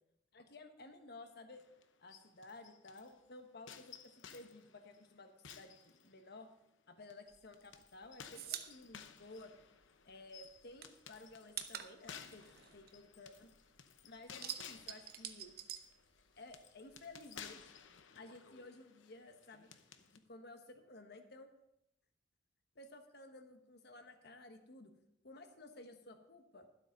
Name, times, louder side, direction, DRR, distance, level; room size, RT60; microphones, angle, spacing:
voice 1, 0.3-1.6 2.0-6.5 6.9-9.5 10.0-12.4 12.7-13.5 14.0-15.5 16.4-17.7 18.1-21.5 22.7-24.9 25.2-26.7, left 2 dB, 55° left, 7 dB, 1.2 m, -55 dB
sound 1, 1.5-3.1 3.7-6.5 7.1-20.2, left 7 dB, 75° left, 0.8 m, -56 dB
sound 2, 7.3-10.1 10.4-13.7 14.0-16.6 16.9-18.0, right 10 dB, 50° right, 0.8 m, -48 dB
12.0 x 8.1 x 5.3 m, 0.84 s
head